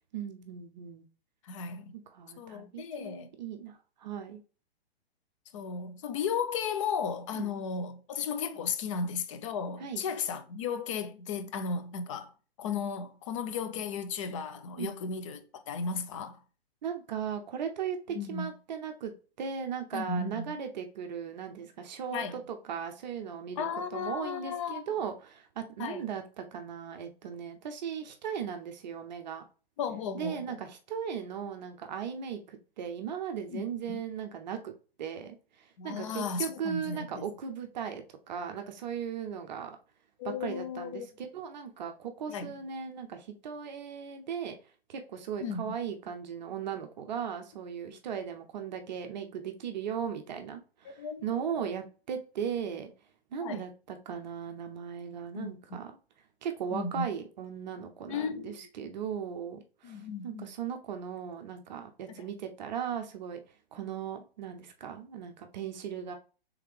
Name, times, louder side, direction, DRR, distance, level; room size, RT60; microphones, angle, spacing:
voice 1, 0.1-1.1 1.9-4.4 7.3-7.5 9.8-10.0 14.8-15.0 16.8-19.1 19.4-29.4 30.1-34.7 35.0-39.8 40.4-44.5 44.9-52.9 53.3-55.9 56.4-63.4 63.7-66.1, right 7 dB, 45° right, 0.6 m, -37 dB
voice 2, 1.4-1.9 2.4-3.3 5.5-12.3 12.6-16.4 18.1-18.5 19.9-20.5 22.1-22.4 23.6-24.8 25.8-26.0 29.8-30.6 33.5-34.0 35.8-37.2 40.2-41.1 42.3-42.5 45.4-45.8 47.9-48.0 50.8-51.5 53.4-53.6 55.3-55.5 56.7-57.1 58.1-58.7 59.8-60.5 62.2-62.3, left 6 dB, 30° left, 0.4 m, -35 dB
3.5 x 3.2 x 3.2 m
figure-of-eight pair, 120°, 31 cm